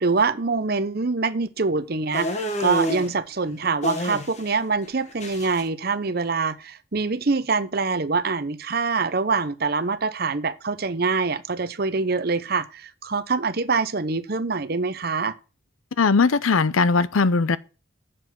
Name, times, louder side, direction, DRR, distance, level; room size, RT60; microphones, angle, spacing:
voice 1, 0.0-15.3, right 4 dB, 50° right, 0.7 m, -25 dB
sound 1, 2.1-3.1 3.8-4.6 4.8-5.6, equal, 35° left, 1.5 m, -28 dB
voice 2, 16.0-17.6, left 4 dB, 85° left, 0.6 m, -19 dB
7.6 x 7.0 x 5.9 m
head